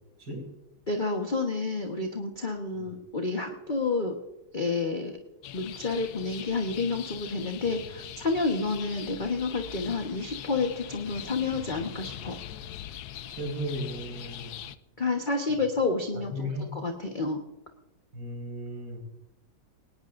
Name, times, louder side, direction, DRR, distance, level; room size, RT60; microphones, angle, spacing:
voice 1, 0.9-4.2 4.5-5.2 5.5-12.4 15.0-17.4, left 3 dB, 30° left, 2 dB, 1.2 m, -29 dB
sound 1, 5.4-14.7, left 10 dB, 70° left, 1.0 m, -42 dB
voice 2, 13.3-14.5 16.1-16.7 18.1-19.0, equal, 60° right, 0 dB, 6.1 m, -35 dB
20.5 x 18.5 x 2.6 m, 0.92 s
omnidirectional pair, 2.3 m